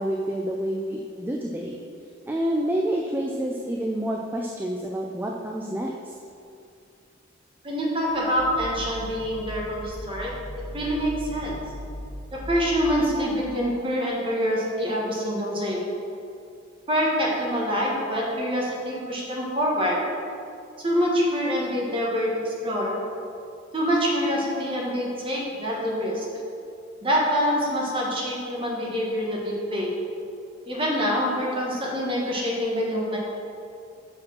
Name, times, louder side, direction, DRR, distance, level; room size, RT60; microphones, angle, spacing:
voice 1, 0.0-1.8 2.3-6.1, right 1 dB, 10° right, -1 dB, 0.4 m, -28 dB
voice 2, 7.6-10.3 10.7-11.5 12.3-15.9 16.9-20.1 20.8-23.0 23.7-26.3 27.0-29.9 30.6-33.2, equal, 25° right, -3 dB, 1.4 m, -25 dB
sound 1, 8.0-13.5, equal, 15° left, 1.4 m, -38 dB
6.2 x 5.0 x 6.0 m, 2.5 s
head